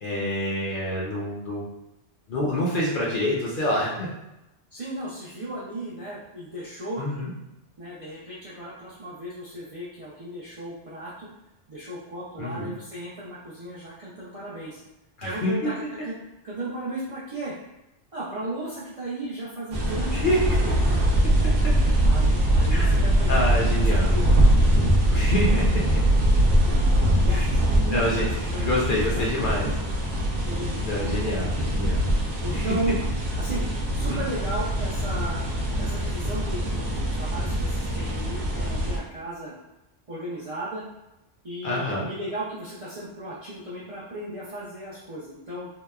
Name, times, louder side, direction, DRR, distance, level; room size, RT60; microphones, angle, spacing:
voice 1, 0.0-1.7 2.3-4.1 7.0-7.3 12.4-12.7 15.2-15.5 20.1-20.4 22.7-24.1 25.1-25.8 27.3-27.5 27.9-28.3 28.6-29.7 30.8-32.0 32.5-32.7 34.1-34.2 41.6-42.1, left 1 dB, 55° left, -5 dB, 0.6 m, -27 dB
voice 2, 4.7-7.0 7.8-11.3 11.7-14.8 15.2-16.1 16.4-17.5 18.1-20.3 22.0-24.4 27.2-29.6 30.4-31.5 32.4-33.0 33.4-35.4 35.8-39.5 40.1-40.8 41.4-45.7, right 1 dB, 50° right, -9 dB, 0.4 m, -35 dB
sound 1, 19.7-39.0, right 1 dB, 85° right, 0.9 m, -22 dB
2.8 x 2.0 x 2.3 m, 0.94 s
omnidirectional pair, 1.2 m